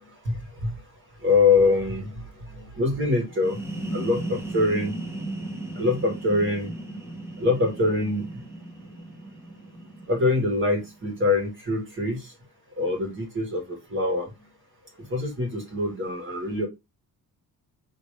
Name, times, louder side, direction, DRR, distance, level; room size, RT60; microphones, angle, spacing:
voice 1, 0.2-0.8 1.2-2.2 2.5-3.6 3.9-4.9 5.8-6.7 7.4-8.2 10.1-12.3 12.8-14.3 15.1-16.7, left 3 dB, 30° right, 1.5 m, -24 dB
sound 1, 3.3-10.9, right 1 dB, 5° right, 0.9 m, -36 dB
4.9 x 3.0 x 3.1 m
cardioid pair, 165°, 39 cm